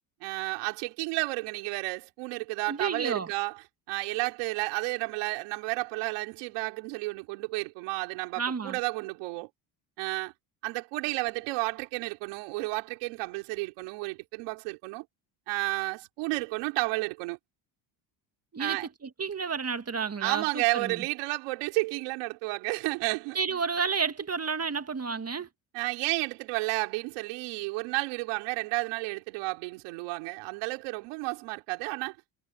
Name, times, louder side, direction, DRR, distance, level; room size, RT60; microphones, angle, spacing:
voice 1, 0.2-9.5 10.0-10.3 10.6-15.1 15.5-17.4 18.6-18.9 20.2-23.4 25.7-32.2, right 24 dB, 85° right, 4.3 m, -32 dB
voice 2, 2.7-3.3 8.4-8.8 18.5-21.0 23.3-25.5, right 5 dB, 30° right, 2.0 m, -31 dB
supercardioid pair, 70°, 49 cm